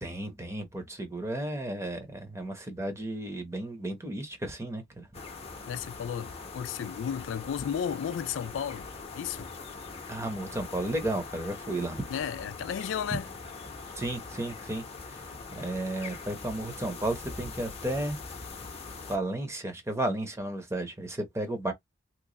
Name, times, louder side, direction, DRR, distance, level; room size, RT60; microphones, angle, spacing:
voice 1, 0.0-5.1 10.1-12.1 13.9-18.2 19.1-21.7, right 1 dB, 15° right, 0.8 m, -33 dB
sound 1, 5.1-19.2, left 4 dB, 35° left, 0.8 m, -42 dB
voice 2, 5.7-9.5 12.1-13.3, left 8 dB, 80° left, 0.3 m, -34 dB
3.1 x 2.2 x 3.8 m
head